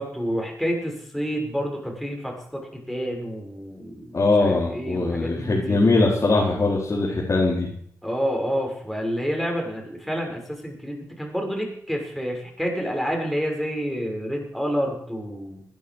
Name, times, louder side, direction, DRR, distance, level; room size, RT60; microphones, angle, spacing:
voice 1, 0.0-5.8 8.0-15.6, equal, ahead, 0 dB, 6.8 m, -29 dB
voice 2, 4.1-7.7, left 3 dB, 45° left, -4 dB, 4.4 m, -21 dB
16.5 x 11.0 x 6.5 m, 0.66 s
cardioid pair, 50°, 7 cm